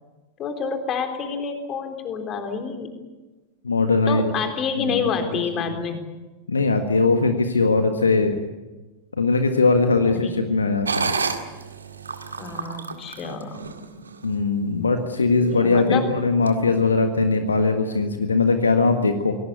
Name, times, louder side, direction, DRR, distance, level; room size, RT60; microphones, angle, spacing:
voice 1, 0.4-2.9 4.1-6.0 10.1-10.5 12.4-13.6 15.2-16.1, left 5 dB, 30° left, 5 dB, 3.8 m, -28 dB
voice 2, 3.6-4.3 4.7-5.7 6.5-8.3 9.2-11.1 14.2-19.4, left 3 dB, 75° left, 7 dB, 1.6 m, -20 dB
sound 1, 10.9-14.3 14.8-14.9 15.4-15.8 16.4-16.5, right 4 dB, 75° right, 2.0 m, -30 dB
25.5 x 18.0 x 8.3 m, 1.2 s
figure-of-eight pair, 90°, 0 cm